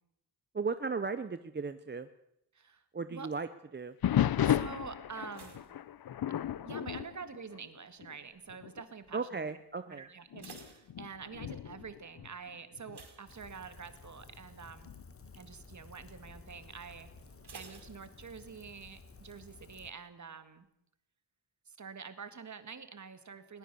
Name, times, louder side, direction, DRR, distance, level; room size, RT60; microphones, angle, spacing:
voice 1, 0.5-2.1 2.9-3.5 3.7-4.0 9.1-10.1, right 4 dB, 25° right, 11 dB, 0.7 m, -36 dB
voice 2, 2.5-2.8 3.1-3.3 4.4-5.7 6.6-9.5 9.9-15.0 15.4-17.1 17.5-20.7 21.7-23.6, right 5 dB, 45° right, 11 dB, 2.0 m, -47 dB
sound 1, 4.0-8.2 8.5-8.8 9.5-9.6 10.3-13.0 14.8-15.4, left 10 dB, 65° left, 0.7 m, -34 dB
sound 2, 5.3-6.8 7.0-7.5 8.1-8.5 8.8-8.9 9.3-9.4 10.0-11.6 12.9-14.0 14.4-14.6 15.0-15.1 17.4-18.6 18.9-19.0, right 5 dB, 75° right, 4.8 m, -54 dB
Rain, 13.3-19.9, left 3 dB, 35° left, 1.6 m, -54 dB
21.0 x 19.0 x 6.9 m, 0.81 s
wide cardioid pair, 140°, 40 cm